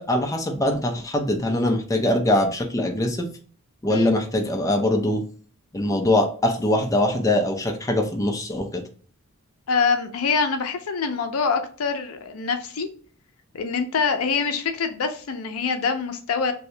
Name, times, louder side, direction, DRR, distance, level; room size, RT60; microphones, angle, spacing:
voice 1, 0.0-3.3 3.8-5.2 5.7-8.8, left 1 dB, 15° left, 3 dB, 0.4 m, -22 dB
voice 2, 9.7-12.9 13.5-16.5, left 5 dB, 75° left, 7 dB, 0.5 m, -25 dB
2.7 x 2.7 x 3.2 m, 0.43 s
head